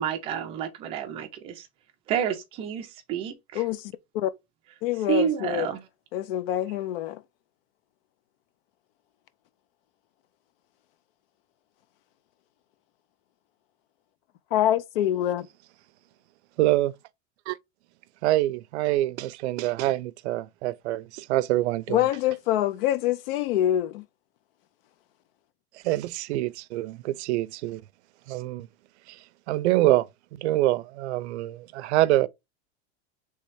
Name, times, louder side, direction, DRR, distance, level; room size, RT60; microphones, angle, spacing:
voice 1, 0.0-1.7 2.1-3.6 5.1-5.8, right 9 dB, 20° right, 0.4 m, -29 dB
voice 2, 3.5-4.3 4.8-5.7 6.1-7.2 14.5-15.5 21.9-24.0, left 12 dB, 60° left, 0.5 m, -25 dB
voice 3, 16.6-16.9 17.5-17.6 18.2-22.0 25.8-27.8 28.3-28.7 29.1-29.2 29.5-32.3, right 16 dB, 85° right, 0.5 m, -25 dB
3.4 x 3.1 x 4.7 m
supercardioid pair, 175°, 33 cm